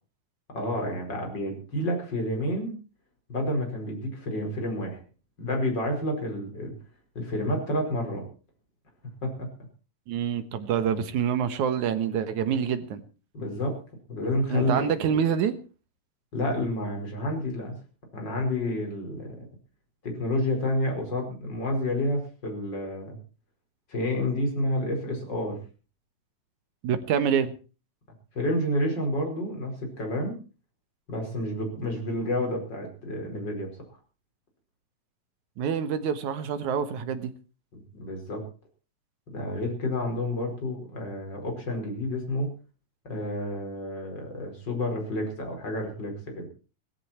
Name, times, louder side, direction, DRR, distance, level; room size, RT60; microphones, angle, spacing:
voice 1, 0.5-2.7 3.3-5.0 5.4-6.7 7.2-8.2 9.2-9.5 13.3-13.8 14.1-14.9 16.3-17.7 18.1-19.4 20.0-23.2 23.9-25.6 28.3-30.4 31.1-33.7 37.7-38.4 39.3-42.5 43.0-46.5, left 1 dB, 30° left, 3 dB, 5.5 m, -29 dB
voice 2, 10.1-13.0 14.5-15.6 26.8-27.5 35.6-37.3, right 8 dB, 70° right, 11 dB, 2.7 m, -26 dB
17.0 x 15.5 x 4.4 m, 0.36 s
omnidirectional pair, 3.8 m